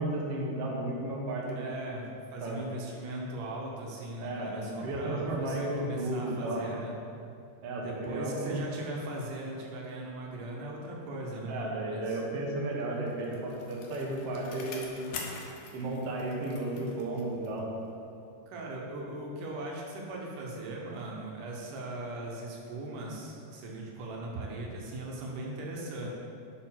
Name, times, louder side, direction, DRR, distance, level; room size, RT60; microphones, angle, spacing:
voice 1, 0.0-1.6 2.4-2.7 4.2-6.8 7.6-8.5 11.5-15.0 15.7-17.8, right 1 dB, 65° right, -2 dB, 1.7 m, -33 dB
voice 2, 1.6-6.9 7.8-12.2 18.5-26.1, right 2 dB, 80° right, -2 dB, 2.4 m, -39 dB
Bicycle, 12.8-17.7 18.1-18.2, left 4 dB, 75° left, 1.4 m, -45 dB
6.6 x 4.4 x 5.7 m, 2.5 s
omnidirectional pair, 3.7 m